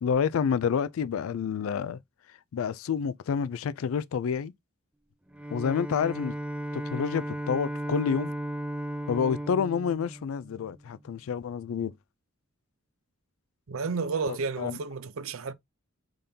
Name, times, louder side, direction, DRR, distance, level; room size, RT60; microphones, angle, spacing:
voice 1, 0.0-2.0 2.3-4.5 5.5-6.4 6.7-8.3 9.1-11.9 14.3-14.8, left 7 dB, 80° left, 0.4 m, -29 dB
Bowed string instrument, 5.3-11.0, right 1 dB, 5° right, 0.4 m, -35 dB
voice 2, 13.7-15.5, right 4 dB, 80° right, 0.6 m, -31 dB
5.2 x 3.8 x 2.7 m
head